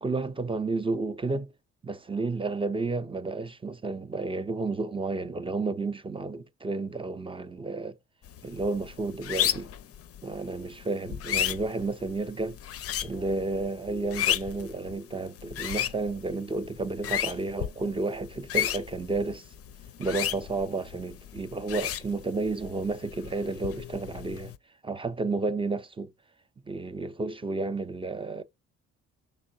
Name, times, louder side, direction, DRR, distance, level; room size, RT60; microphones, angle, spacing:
voice 1, 0.0-1.5 1.8-8.0 8.4-9.7 10.2-12.6 13.0-19.5 20.0-24.5 24.8-26.1 26.7-28.4, right 3 dB, 20° right, 0.4 m, -31 dB
sound 1, 8.2-24.6, left 11 dB, 50° left, 0.4 m, -34 dB
5.3 x 3.8 x 2.6 m
cardioid pair, 90°, 30 cm